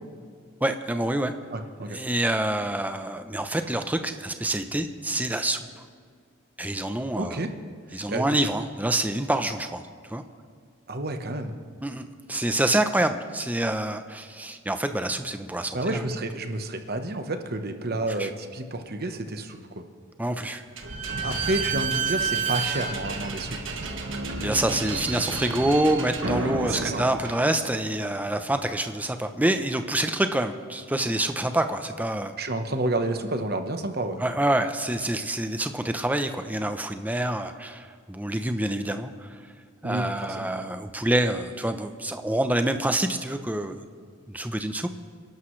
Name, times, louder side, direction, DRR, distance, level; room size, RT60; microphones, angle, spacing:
voice 1, 0.6-1.3 1.9-5.6 6.6-7.4 7.9-9.8 10.1-10.2 11.8-16.0 18.2-18.3 20.2-20.6 24.4-32.3 34.2-39.3 39.8-43.8 44.3-45.0, right 1 dB, 10° right, 8 dB, 0.7 m, -27 dB
voice 2, 1.5-2.0 7.2-7.5 7.9-8.4 10.9-11.6 15.7-19.6 21.0-23.6 26.6-27.0 32.4-34.2 39.8-40.5, right 2 dB, 50° right, 6 dB, 1.1 m, -30 dB
Slam / Squeak, 20.8-28.0, right 4 dB, 65° right, 1.6 m, -30 dB
27.0 x 12.0 x 3.3 m, 2.1 s
head